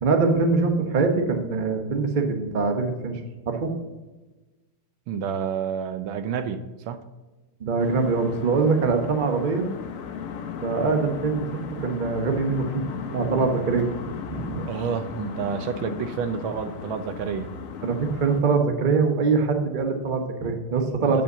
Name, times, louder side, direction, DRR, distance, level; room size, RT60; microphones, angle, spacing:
voice 1, 0.0-3.2 3.5-3.7 7.6-9.7 10.6-12.8 13.1-13.9 14.3-14.6 17.8-21.2, right 4 dB, 50° right, 5 dB, 0.5 m, -23 dB
voice 2, 5.1-7.0 14.7-17.5 21.0-21.2, right 7 dB, 75° right, 10 dB, 1.3 m, -29 dB
sound 1, 7.8-18.4, left 7 dB, 85° left, 0.7 m, -36 dB
8.7 x 5.4 x 6.7 m, 1.2 s
omnidirectional pair, 2.4 m